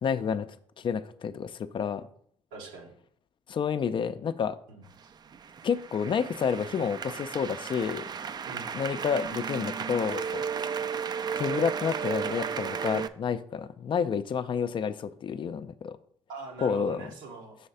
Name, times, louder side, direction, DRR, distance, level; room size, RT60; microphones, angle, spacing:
voice 1, 0.0-0.5 0.8-2.0 3.5-4.6 5.6-8.1 8.7-10.4 11.4-16.0 16.6-17.1, left 6 dB, 45° left, 0.4 m, -29 dB
voice 2, 2.5-2.9 4.7-5.1 8.4-8.8 16.3-17.6, right 3 dB, 85° right, 1.3 m, -43 dB
sound 1, 5.0-13.1, right 6 dB, 35° right, 0.4 m, -34 dB
5.6 x 3.2 x 5.5 m
hypercardioid pair, 60°, 12 cm